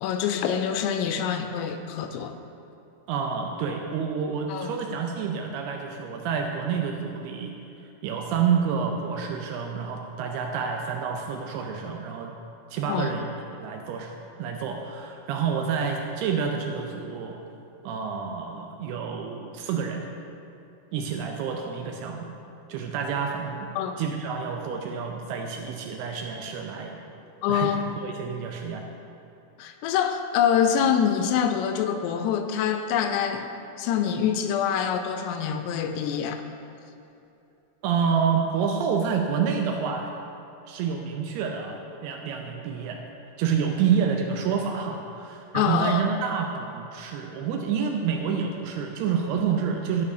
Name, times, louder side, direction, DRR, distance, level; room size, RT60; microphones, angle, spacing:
voice 1, 0.0-2.4 4.5-4.7 12.9-13.2 23.8-23.9 27.4-27.9 29.6-33.5 33.8-36.4 45.5-46.0, left 8 dB, 85° left, 7 dB, 2.5 m, -25 dB
voice 2, 3.1-7.5 8.0-12.3 12.7-13.3 13.6-14.1 14.4-17.4 17.8-20.1 20.9-22.3 22.7-23.7 24.0-27.0 27.5-27.7 28.0-28.9 37.8-40.1 40.7-43.0 43.4-50.1, right 6 dB, 80° right, 2 dB, 2.4 m, -28 dB
11.5 x 5.3 x 5.0 m, 2.7 s
omnidirectional pair, 4.9 m